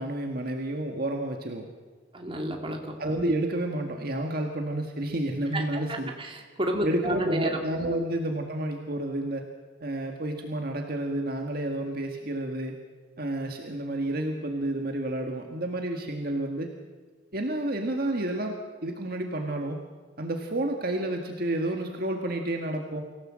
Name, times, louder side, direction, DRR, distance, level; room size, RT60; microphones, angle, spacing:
voice 1, 0.0-1.7 3.0-6.1 6.8-9.4 9.8-12.7 13.2-16.7 17.3-18.5 18.8-19.8 20.2-23.0, right 1 dB, 50° right, 3 dB, 1.8 m, -30 dB
voice 2, 2.1-3.0 5.5-7.5 7.9-8.0, right 1 dB, 25° right, 2 dB, 2.7 m, -30 dB
25.5 x 16.5 x 7.6 m, 1.4 s
head